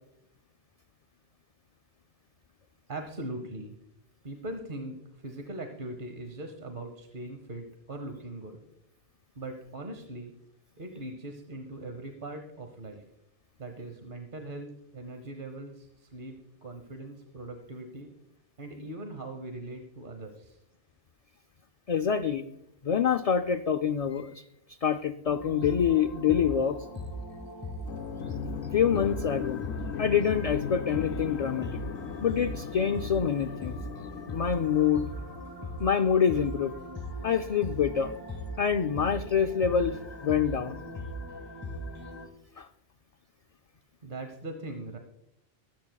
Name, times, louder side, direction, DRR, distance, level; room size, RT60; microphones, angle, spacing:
voice 1, 2.9-3.8 4.2-8.6 9.3-10.3 10.8-13.0 13.6-16.4 16.6-18.1 18.6-20.6 44.0-45.0, right 2 dB, 55° right, 5 dB, 1.2 m, -40 dB
voice 2, 21.9-22.4 22.8-24.4 24.8-26.8 28.7-29.6 30.0-31.8 32.2-33.8 34.3-35.1 35.8-36.7 37.2-38.1 38.6-40.8 42.6-42.7, left 7 dB, 50° left, 7 dB, 0.4 m, -26 dB
sound 1, 25.2-42.3, equal, 25° left, 1.4 m, -39 dB
sound 2, 27.8-35.4, left 8 dB, 90° left, 0.8 m, -38 dB
24.0 x 8.5 x 2.3 m, 0.84 s
omnidirectional pair, 1.1 m